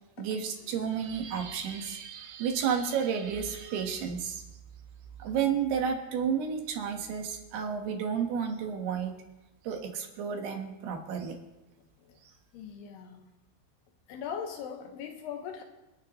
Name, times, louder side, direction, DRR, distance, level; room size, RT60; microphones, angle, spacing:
voice 1, 0.2-4.4 5.2-9.1 9.6-11.4, right 7 dB, 80° right, 3 dB, 3.4 m, -31 dB
voice 2, 12.5-13.3 14.1-15.6, left 7 dB, 85° left, 4 dB, 3.3 m, -40 dB
28.0 x 9.3 x 3.1 m, 1.0 s
omnidirectional pair, 4.7 m